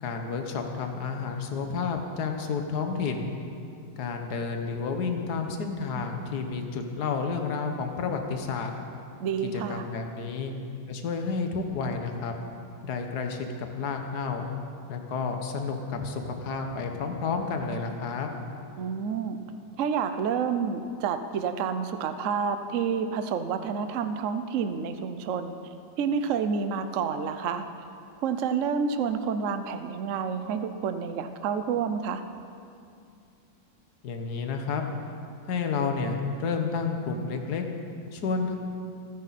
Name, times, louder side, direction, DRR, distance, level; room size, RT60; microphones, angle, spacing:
voice 1, 0.0-3.4 4.0-8.7 9.5-10.5 10.9-12.4 12.8-14.5 14.9-18.3 34.0-34.8 35.5-37.6 38.1-38.6, left 5 dB, 55° left, 4 dB, 1.7 m, -30 dB
voice 2, 9.2-9.8 18.8-19.4 19.8-25.6 26.0-27.7 28.2-32.2, right 6 dB, 65° right, 8 dB, 0.8 m, -29 dB
28.0 x 10.5 x 4.2 m, 2.5 s
omnidirectional pair, 2.1 m